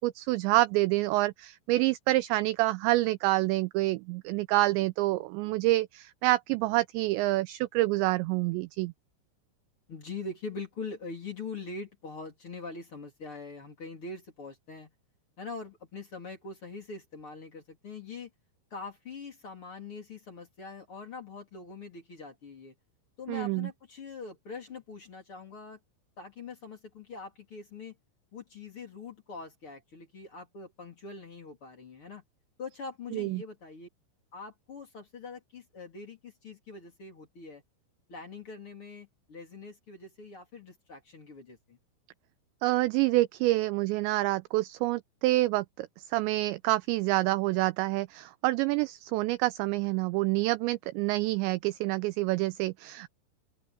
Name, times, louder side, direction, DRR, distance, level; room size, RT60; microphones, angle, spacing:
voice 1, 0.0-8.9 23.3-23.7 33.1-33.4 42.6-45.9 46.1-53.1, right 19 dB, 85° right, 2.6 m, -27 dB
voice 2, 9.9-14.9 15.4-18.3 18.7-22.7 23.2-25.8 26.2-27.9 28.3-32.2 32.6-33.9 34.3-37.6 38.1-41.8, left 4 dB, 30° left, 3.3 m, -43 dB
open air
omnidirectional pair, 5.6 m